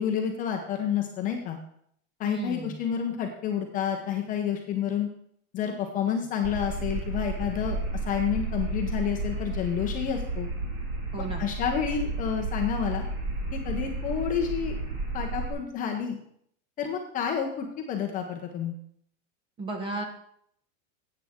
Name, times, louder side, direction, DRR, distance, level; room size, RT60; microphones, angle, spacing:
voice 1, 0.0-1.6 2.2-5.1 5.5-7.8 8.1-10.5 11.2-13.0 13.5-14.8 15.1-16.2 16.8-18.8, left 8 dB, 20° left, 2 dB, 0.8 m, -29 dB
voice 2, 2.2-2.8 11.1-11.5 19.6-20.0, right 3 dB, 15° right, 4 dB, 1.0 m, -34 dB
sound 1, 6.4-15.5, right 2 dB, 30° right, 2.0 m, -32 dB
12.5 x 8.6 x 3.6 m, 0.68 s
supercardioid pair, 165°, 39 cm